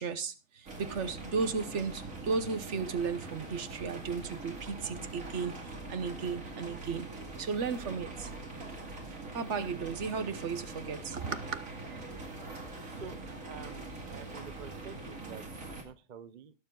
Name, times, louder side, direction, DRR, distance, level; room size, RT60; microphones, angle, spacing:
voice 1, 0.0-7.1 7.4-8.3 9.3-11.6, right 5 dB, 65° right, 1.3 m, -35 dB
sound 1, 0.7-15.8, right 2 dB, 85° right, 2.9 m, -43 dB
voice 2, 13.5-16.5, right 7 dB, 45° right, 0.7 m, -48 dB
19.0 x 7.1 x 3.8 m
omnidirectional pair, 1.4 m